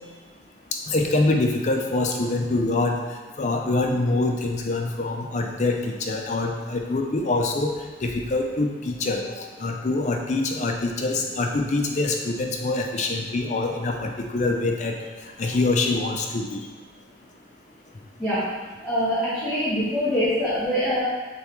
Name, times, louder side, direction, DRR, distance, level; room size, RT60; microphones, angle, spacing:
voice 1, 0.9-3.0 3.4-7.7 8.0-15.0 15.4-16.6, left 2 dB, 40° left, 2 dB, 0.5 m, -25 dB
voice 2, 18.8-21.0, equal, 5° right, -15 dB, 1.3 m, -24 dB
6.8 x 2.3 x 3.0 m, 1.3 s
head